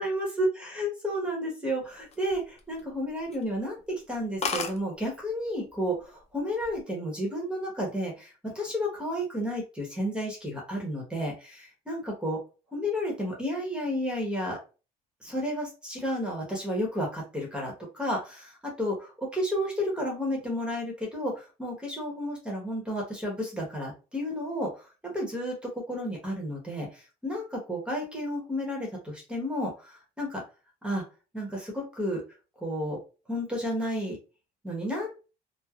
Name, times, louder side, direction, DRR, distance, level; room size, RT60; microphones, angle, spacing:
voice 1, 0.0-12.4 12.7-14.6 15.2-30.4 30.8-31.0 31.3-32.2 32.6-33.0 33.3-34.2 34.6-35.3, equal, 5° right, -1 dB, 1.0 m, -32 dB
sound 1, 1.9-2.9 3.3-3.5 3.9-4.0 4.2-4.3 4.4-4.8 5.7-6.0 6.4-6.8, left 5 dB, 40° left, 0.5 m, -33 dB
3.2 x 2.1 x 2.3 m, 0.33 s
cardioid pair, 110°, 17 cm